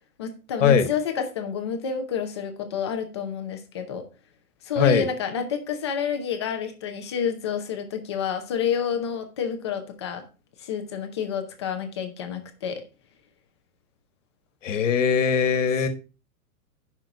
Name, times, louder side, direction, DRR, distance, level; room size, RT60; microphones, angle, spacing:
voice 1, 0.2-4.0 4.6-10.2 10.6-12.8 15.8-15.9, left 7 dB, 20° left, 0.7 m, -29 dB
voice 2, 4.8-5.1 14.6-15.9, left 7 dB, 55° left, 1.5 m, -20 dB
9.6 x 5.8 x 4.8 m
hypercardioid pair, 180°, 45 cm